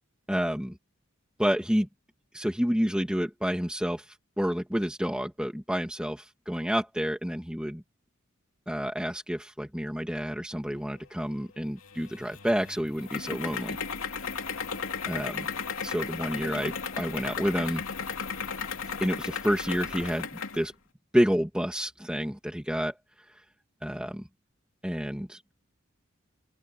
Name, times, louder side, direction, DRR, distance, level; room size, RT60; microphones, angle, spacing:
voice 1, 0.3-0.8 1.4-1.9 2.3-7.8 8.7-13.8 15.1-15.5 15.8-17.8 19.0-20.7 21.1-23.0 23.8-24.3 24.8-25.4, equal, 5° right, 2.5 m, -29 dB
sound 1, 11.8-20.7, left 6 dB, 80° left, 2.8 m, -35 dB
open air
head